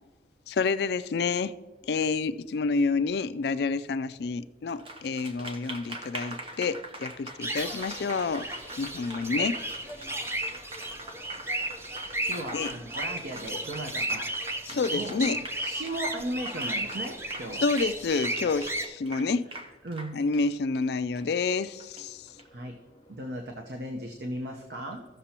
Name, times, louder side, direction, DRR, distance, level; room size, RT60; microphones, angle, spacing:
voice 1, 0.5-1.5 1.9-8.5 8.8-9.9 12.5-12.7 14.7-15.4 17.6-19.4 20.1-22.3, left 4 dB, 60° left, 0.3 m, -29 dB
Applause, 4.7-22.4, right 2 dB, 30° right, 0.9 m, -43 dB
sound 1, 7.4-18.9, right 1 dB, 15° right, 0.5 m, -34 dB
Crash cymbal, 7.6-11.8, right 2 dB, 75° right, 1.9 m, -50 dB
voice 2, 10.8-12.3 22.1-23.2, left 1 dB, 20° left, 1.0 m, -60 dB
voice 3, 12.3-14.3 14.9-15.2 15.6-17.6 19.1-19.2 19.5-19.6 19.8-20.2 22.5-22.7 23.1-25.1, right 1 dB, 60° right, 0.8 m, -36 dB
15.5 x 6.7 x 2.9 m
head